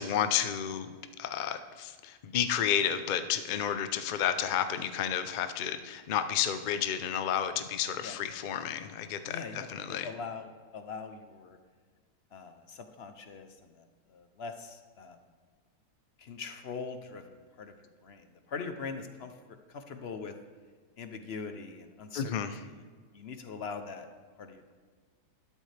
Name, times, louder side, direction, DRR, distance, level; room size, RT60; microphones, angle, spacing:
voice 1, 0.0-10.1 22.1-22.6, left 9 dB, 80° left, 9 dB, 0.4 m, -31 dB
voice 2, 9.2-11.6 12.3-15.2 16.2-20.3 21.0-22.3 22.6-22.8 23.1-24.1 24.4-24.7, left 5 dB, 50° left, 8 dB, 0.8 m, -42 dB
12.0 x 12.0 x 3.3 m, 1.6 s
omnidirectional pair, 1.7 m